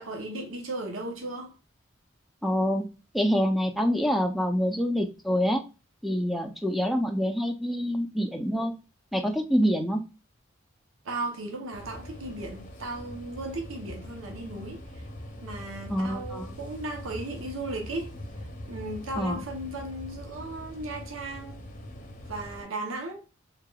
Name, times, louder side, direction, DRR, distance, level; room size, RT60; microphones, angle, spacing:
voice 1, 0.0-1.5 11.0-15.0 15.4-18.1 18.7-21.6 22.3-23.2, right 2 dB, 80° right, 0.8 m, -36 dB
voice 2, 2.4-2.9 3.1-5.6 6.0-8.7 9.1-10.0 15.9-16.5 19.2-19.4, equal, ahead, 0.4 m, -26 dB
sound 1, 11.7-22.6, left 1 dB, 40° left, 0.7 m, -42 dB
3.7 x 3.4 x 2.3 m
head